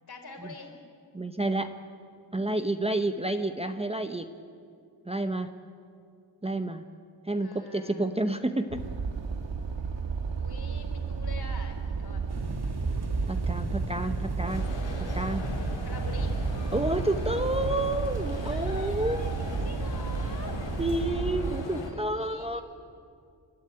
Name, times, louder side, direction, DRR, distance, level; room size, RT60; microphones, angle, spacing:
voice 1, 0.1-0.7 7.4-8.1 10.4-12.6 15.8-16.4 18.4-19.3 19.6-20.6 21.4-22.6, left 3 dB, 60° left, 3 dB, 3.7 m, -45 dB
voice 2, 1.1-1.7 2.3-4.3 5.1-5.5 6.4-6.8 7.3-8.8 13.3-14.7 15.1-15.4 16.7-19.2 20.8-22.6, right 2 dB, 15° right, 7 dB, 0.8 m, -29 dB
sound 1, 8.7-21.6, right 5 dB, 90° right, 1.6 m, -33 dB
sound 2, 12.3-21.0, right 2 dB, 60° right, 2.6 m, -36 dB
sound 3, 14.4-21.9, left 3 dB, 85° left, 3.1 m, -40 dB
28.5 x 12.5 x 10.0 m, 2.4 s
wide cardioid pair, 125°, 43 cm